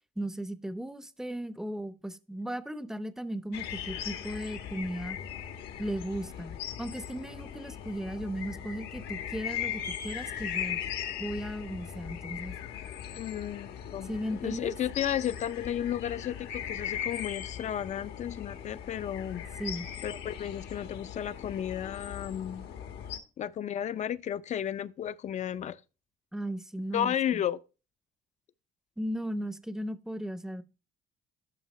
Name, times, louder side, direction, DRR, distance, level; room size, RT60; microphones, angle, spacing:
voice 1, 0.2-5.2 5.8-10.8 11.2-12.5 14.0-14.7 19.6-19.9 26.3-27.4 29.0-30.6, equal, 5° right, 0.6 m, -36 dB
sound 1, 3.5-23.2, left 9 dB, 75° left, 1.2 m, -39 dB
voice 2, 13.1-19.4 20.0-22.7 23.4-25.8 26.9-27.6, left 10 dB, 45° left, 0.5 m, -33 dB
11.5 x 5.5 x 3.1 m
cardioid pair, 110°, 17 cm